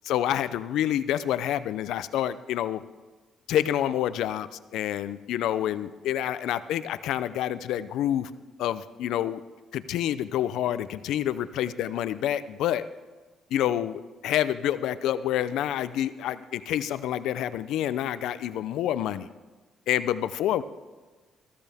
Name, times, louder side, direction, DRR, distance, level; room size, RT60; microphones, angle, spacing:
voice 1, 0.1-2.8 3.5-8.3 8.6-9.4 9.7-12.8 13.5-19.3 19.9-20.6, left 11 dB, 85° left, 14 dB, 0.5 m, -28 dB
14.5 x 13.5 x 3.5 m, 1.3 s
cardioid pair, 90°, 0 cm